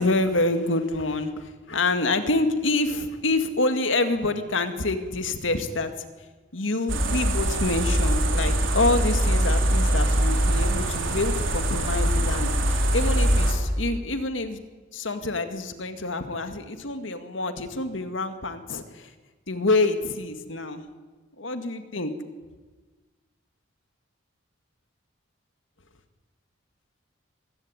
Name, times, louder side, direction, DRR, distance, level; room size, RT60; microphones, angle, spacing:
voice 1, 0.0-6.1 6.5-14.6 14.9-19.1 19.5-20.8 21.4-22.1, left 2 dB, 75° left, 8 dB, 2.1 m, -27 dB
sound 1, 6.9-13.5, right 1 dB, 80° right, 4.0 m, -23 dB
25.0 x 15.5 x 9.8 m, 1.3 s
head